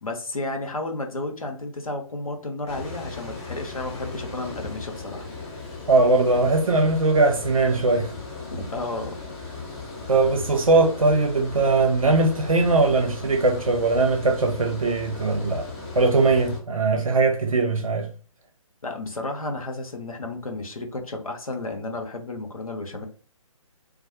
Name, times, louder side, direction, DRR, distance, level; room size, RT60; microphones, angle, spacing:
voice 1, 0.0-5.3 8.5-9.1 18.8-23.1, left 2 dB, 75° left, 0.7 m, -32 dB
Water, 2.7-16.6, left 3 dB, 25° left, 1.0 m, -37 dB
voice 2, 5.9-8.1 10.1-15.7 15.9-18.1, right 3 dB, 70° right, 0.7 m, -20 dB
2.2 x 2.1 x 2.7 m
figure-of-eight pair, 140°, 18 cm